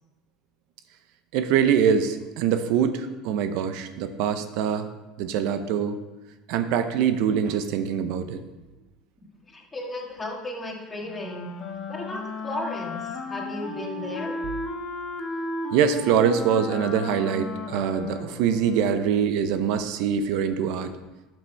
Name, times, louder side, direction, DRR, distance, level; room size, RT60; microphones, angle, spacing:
voice 1, 1.3-4.9 5.2-6.0 6.5-8.4 15.7-20.9, right 8 dB, 70° right, 9 dB, 0.6 m, -24 dB
voice 2, 9.5-11.5 11.9-14.4, left 1 dB, 20° left, 0 dB, 1.6 m, -34 dB
Wind instrument woodwind instrument, 11.0-19.2, left 3 dB, 40° left, 1.4 m, -35 dB
12.5 x 6.1 x 3.3 m, 1.1 s
supercardioid pair, 125°, 0 cm